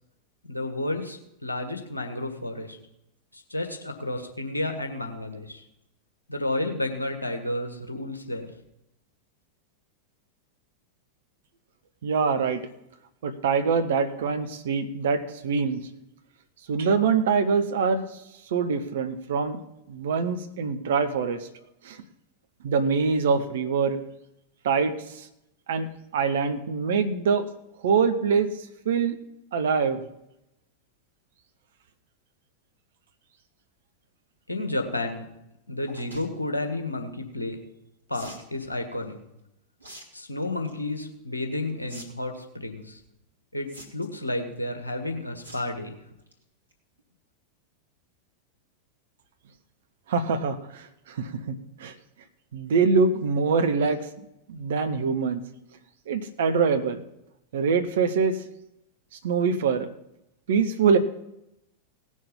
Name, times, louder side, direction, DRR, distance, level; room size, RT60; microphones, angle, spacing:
voice 1, 0.4-2.8 3.3-5.6 6.3-8.5 34.5-35.2 35.7-37.6 38.1-39.2 40.1-43.0 43.5-45.9, left 2 dB, 80° left, 3 dB, 1.7 m, -31 dB
voice 2, 12.0-12.6 13.2-15.8 16.7-18.1 18.5-19.6 19.9-21.5 21.8-22.0 22.6-24.0 24.6-25.3 25.7-25.9 26.1-27.5 27.8-28.5 28.8-29.2 29.5-30.0 50.1-51.9 52.5-54.1 54.5-55.4 56.1-57.0 57.5-58.4 59.2-59.9 60.5-61.0, right 5 dB, 60° right, 10 dB, 1.1 m, -24 dB
sound 1, 35.9-36.3 38.1-38.5 39.8-40.1 40.4-40.8 41.9-42.0 42.3-42.4 43.7-44.2 45.4-45.7 46.1-46.3 46.7-46.8 47.0-47.1, right 1 dB, 80° right, 2.2 m, -44 dB
18.0 x 6.5 x 5.5 m, 0.85 s
figure-of-eight pair, 90°, 0 cm